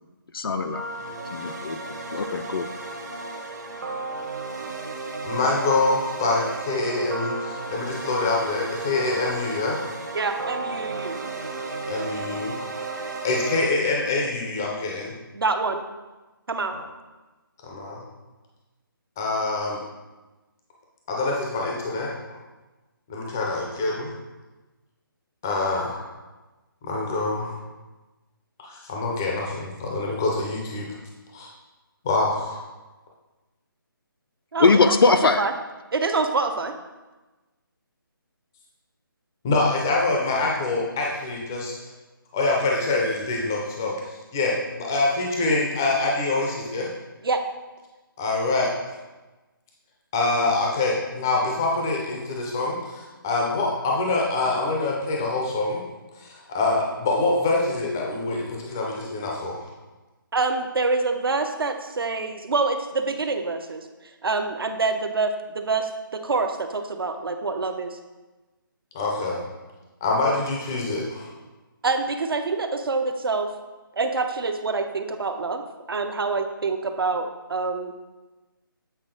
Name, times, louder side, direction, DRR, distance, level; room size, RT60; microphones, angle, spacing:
voice 1, 0.3-0.8 1.3-1.8 2.1-2.7 34.6-35.5, left 4 dB, 75° left, 8 dB, 0.4 m, -20 dB
sound 1, 0.5-13.7, right 3 dB, 50° right, 0.9 m, -34 dB
voice 2, 5.2-9.8 11.9-12.6 13.2-15.1 16.7-16.8 17.6-18.0 19.2-19.8 21.1-22.1 23.1-24.1 25.4-26.0 26.8-27.6 28.6-30.9 31.3-31.5 32.0-32.6 39.4-41.7 42.3-43.9 44.3-46.9 48.2-48.7 50.1-55.8 56.2-59.6 68.9-69.4 70.0-71.3, left 2 dB, 10° left, -2 dB, 0.4 m, -25 dB
voice 3, 10.1-11.2 15.3-15.8 16.5-16.8 34.5-35.5 35.9-36.7 47.2-47.4 60.3-63.9 64.2-68.0 71.8-73.5 74.0-77.9, right 3 dB, 75° right, 7 dB, 0.7 m, -26 dB
7.8 x 4.0 x 3.8 m, 1.2 s
hypercardioid pair, 170°, 12 cm